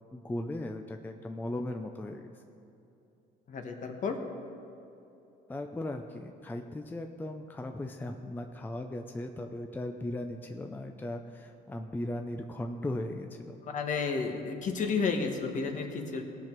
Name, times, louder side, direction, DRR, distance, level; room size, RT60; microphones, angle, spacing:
voice 1, 0.1-2.4 5.5-13.6, left 1 dB, 10° left, 5 dB, 0.5 m, -37 dB
voice 2, 3.5-4.2 13.7-16.2, left 5 dB, 50° left, 4 dB, 1.3 m, -31 dB
17.5 x 5.9 x 4.6 m, 2.8 s
cardioid pair, 110°, 17 cm